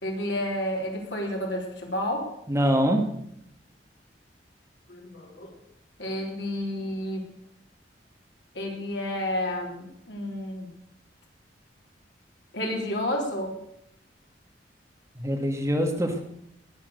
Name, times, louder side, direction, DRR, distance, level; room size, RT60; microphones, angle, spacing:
voice 1, 0.0-2.3 4.9-5.5 6.0-7.3 8.5-10.7 12.5-13.6, left 1 dB, 70° left, 0 dB, 3.8 m, -30 dB
voice 2, 2.5-3.0 15.2-16.2, equal, 15° right, 4 dB, 1.7 m, -24 dB
19.5 x 7.4 x 6.7 m, 0.75 s
head